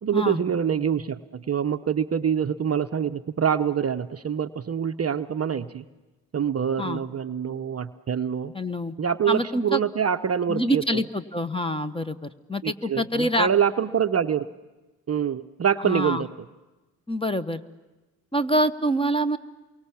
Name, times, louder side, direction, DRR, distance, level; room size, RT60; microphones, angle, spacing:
voice 1, 0.0-5.8 6.3-8.5 9.0-10.8 12.6-14.5 15.1-16.3, right 8 dB, 30° right, 8 dB, 0.8 m, -25 dB
voice 2, 8.5-8.9 9.3-9.8 10.5-13.5 15.8-16.2 17.1-17.6 18.3-19.4, equal, 10° left, 12 dB, 1.1 m, -26 dB
28.5 x 23.5 x 7.3 m, 1.1 s
hypercardioid pair, 50°, 49 cm